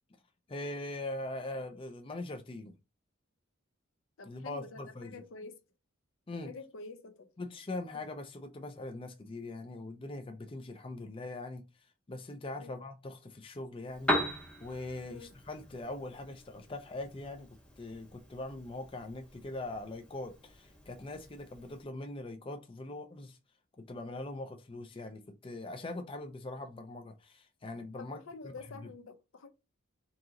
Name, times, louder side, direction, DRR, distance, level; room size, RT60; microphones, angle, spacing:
voice 1, 0.5-2.7 4.3-5.2 6.3-6.5 7.4-11.6 12.1-14.1 14.6-17.5 17.8-23.4 23.8-28.2, left 2 dB, 25° left, 0.4 m, -41 dB
voice 2, 4.2-5.6 6.4-7.3 12.6-12.8 15.1-15.3 28.0-29.5, left 3 dB, 70° left, 0.6 m, -47 dB
Piano, 13.8-21.8, equal, 5° left, 0.8 m, -40 dB
3.8 x 2.9 x 3.7 m
head